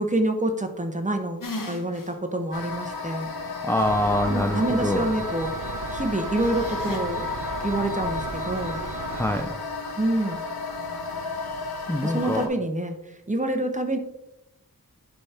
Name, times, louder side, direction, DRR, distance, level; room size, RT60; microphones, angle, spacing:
voice 1, 0.0-3.3 4.3-5.5 5.9-7.2 7.6-8.8 10.0-10.4 12.0-12.9 13.3-14.0, right 1 dB, 20° right, 5 dB, 0.9 m, -27 dB
sound 1, 1.4-2.1 2.6-2.7 6.4-7.0, left 2 dB, 60° left, 1.1 m, -35 dB
sound 2, 2.5-12.5, left 4 dB, 85° left, 1.0 m, -33 dB
voice 2, 3.6-5.1 9.1-9.5 11.9-12.5, left 1 dB, 5° left, 4 dB, 0.5 m, -24 dB
sound 3, 3.8-9.4, right 5 dB, 60° right, 0.6 m, -35 dB
10.5 x 3.5 x 4.3 m, 0.93 s
wide cardioid pair, 70°, 36 cm